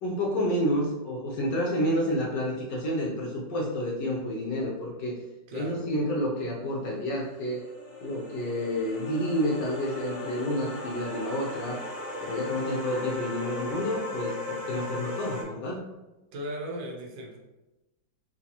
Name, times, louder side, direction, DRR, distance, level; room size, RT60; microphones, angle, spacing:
voice 1, 0.0-5.2 5.5-7.6 8.0-11.8 12.2-15.8, equal, 75° left, -3 dB, 1.4 m, -29 dB
voice 2, 5.5-5.9 16.3-17.5, equal, 90° right, 0 dB, 1.5 m, -37 dB
sound 1, 7.0-15.4, left 2 dB, 25° left, 0.9 m, -38 dB
5.1 x 2.3 x 2.9 m, 1.0 s
omnidirectional pair, 2.0 m